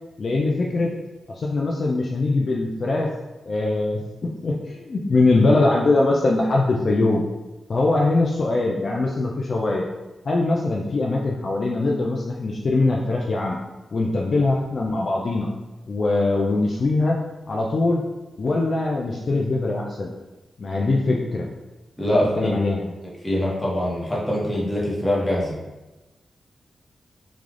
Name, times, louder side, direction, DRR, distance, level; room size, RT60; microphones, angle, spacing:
voice 1, 0.2-0.9 1.4-3.1 3.5-7.2 7.7-9.9 10.3-13.6 13.9-15.5 15.9-17.2 17.5-18.0 18.4-20.1 20.6-21.5 22.0-22.9, left 2 dB, 55° left, -2 dB, 0.3 m, -22 dB
voice 2, 22.0-22.6 23.2-25.5, left 1 dB, 15° left, -6 dB, 1.0 m, -23 dB
3.3 x 2.3 x 2.4 m, 1.1 s
cardioid pair, 75°, 0 cm